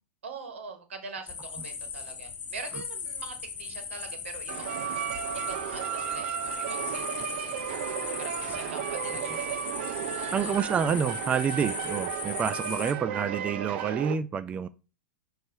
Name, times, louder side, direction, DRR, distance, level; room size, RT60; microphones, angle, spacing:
voice 1, 0.2-4.8 5.3-7.6 8.2-9.7 10.1-10.5, right 4 dB, 85° right, 1.6 m, -43 dB
sound 1, 1.3-12.9, left 6 dB, 25° left, 1.0 m, -38 dB
sound 2, 4.5-14.1, right 10 dB, 65° right, 0.8 m, -34 dB
voice 2, 10.3-14.7, right 7 dB, 20° right, 0.4 m, -28 dB
6.3 x 3.2 x 4.7 m
hypercardioid pair, 120°, 6 cm